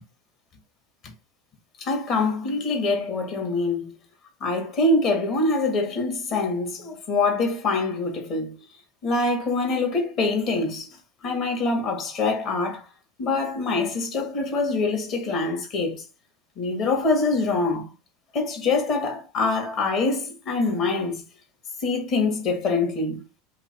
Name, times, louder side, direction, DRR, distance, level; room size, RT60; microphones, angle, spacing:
voice 1, 1.8-3.9 4.4-8.5 9.0-10.9 11.2-12.8 13.2-16.0 16.6-17.9 18.3-21.2 21.8-23.2, left 3 dB, 50° left, 1.8 m, -24 dB
3.9 x 2.9 x 4.6 m
hypercardioid pair, 80°, 0 cm